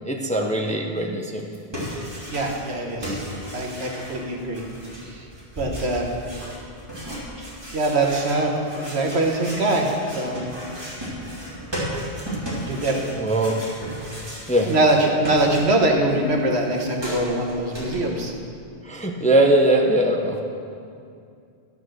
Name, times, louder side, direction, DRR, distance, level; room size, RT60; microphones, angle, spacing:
voice 1, 0.1-1.5 13.2-13.6 14.5-14.7 18.8-20.4, right 1 dB, 10° left, 1 dB, 0.7 m, -20 dB
sound 1, 1.4-2.8 3.0-16.0 16.2-18.1, equal, 25° right, 2.9 m, -35 dB
voice 2, 2.3-3.2 3.5-4.6 5.0-5.3 5.6-6.1 7.4-10.4 12.6-13.0 14.7-18.3, right 2 dB, 75° right, 1 dB, 1.6 m, -23 dB
12.5 x 6.9 x 6.4 m, 2.4 s
omnidirectional pair, 1.1 m